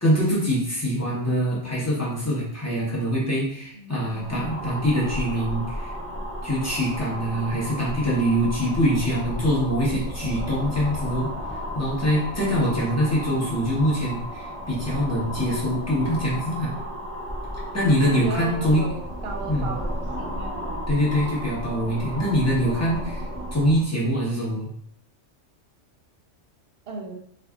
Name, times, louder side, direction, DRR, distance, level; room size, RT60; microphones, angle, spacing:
voice 1, 0.0-5.9 6.4-11.3 11.7-16.7 17.7-18.8 19.5-19.7 20.9-23.2 23.5-24.7, equal, 15° left, -6 dB, 1.1 m, -24 dB
voice 2, 3.7-4.7 8.9-9.9 13.0-13.5 17.8-20.9 26.9-27.1, right 3 dB, 60° right, 1 dB, 0.8 m, -37 dB
sound 1, 4.0-23.9, equal, 10° right, 0.7 m, -33 dB
3.4 x 3.3 x 2.4 m, 0.67 s
omnidirectional pair, 1.3 m